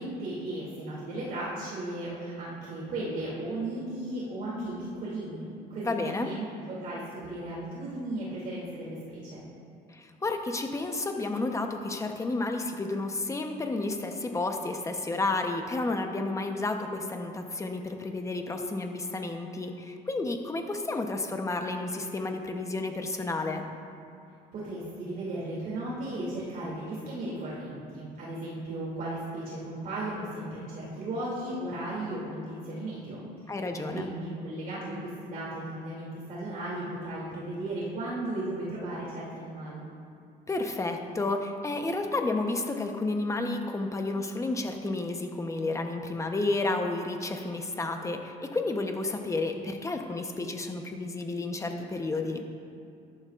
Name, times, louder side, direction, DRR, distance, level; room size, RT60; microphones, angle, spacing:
voice 1, 0.0-9.4 24.5-39.8, right 1 dB, 55° right, -7 dB, 2.8 m, -36 dB
voice 2, 5.8-6.3 9.9-23.7 33.5-34.1 40.5-52.4, left 2 dB, 20° left, 4 dB, 0.9 m, -31 dB
13.5 x 11.5 x 2.5 m, 2.5 s
cardioid pair, 110°, 17 cm